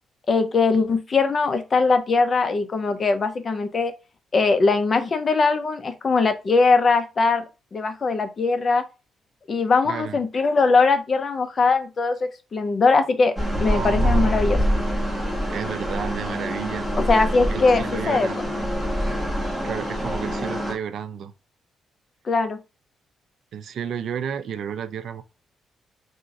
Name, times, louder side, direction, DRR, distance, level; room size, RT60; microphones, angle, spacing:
voice 1, 0.3-3.9 4.3-7.4 7.7-8.8 9.5-12.2 12.5-13.3 13.6-14.6 17.0-18.3 22.3-22.6, left 4 dB, 40° left, 0.7 m, -20 dB
voice 2, 9.8-10.2 13.6-14.6 15.5-16.9 17.5-18.4 19.6-21.3 23.5-25.2, right 8 dB, 70° right, 0.4 m, -32 dB
sound 1, 13.4-20.7, equal, 10° left, 1.5 m, -25 dB
3.5 x 2.6 x 4.0 m
cardioid pair, 105°, 0 cm